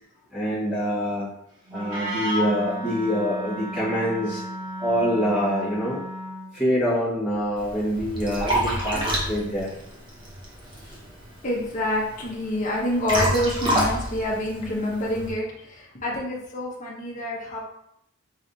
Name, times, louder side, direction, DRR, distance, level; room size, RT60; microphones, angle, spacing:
voice 1, 0.3-1.3 1.7-4.4 4.8-6.0 6.5-9.7, equal, 5° right, -13 dB, 1.3 m, -25 dB
Wind instrument woodwind instrument, 1.7-6.5, equal, 70° right, 1.2 m, -33 dB
Liquid, 7.6-15.3, equal, 20° right, 0.8 m, -29 dB
voice 2, 11.4-17.6, left 1 dB, 35° left, -4 dB, 0.8 m, -27 dB
4.9 x 3.1 x 2.7 m, 0.79 s
head